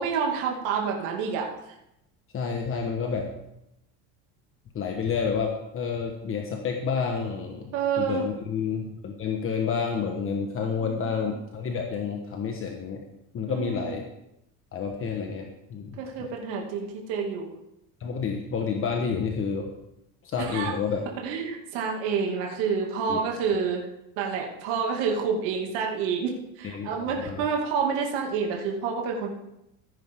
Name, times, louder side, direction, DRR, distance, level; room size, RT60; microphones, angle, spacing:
voice 1, 0.0-1.5 7.7-8.2 10.8-11.0 11.3-11.4 13.5-14.0 16.0-17.5 20.4-20.7 21.2-23.9 24.2-29.3, right 6 dB, 70° right, 0 dB, 2.4 m, -28 dB
voice 2, 2.3-3.3 4.7-13.0 13.3-14.0 14.7-16.3 18.0-19.7 20.2-21.0 23.1-23.2 26.6-27.4, left 6 dB, 30° left, 2 dB, 1.3 m, -29 dB
15.0 x 9.8 x 3.7 m, 0.83 s
cardioid pair, 140°, 41 cm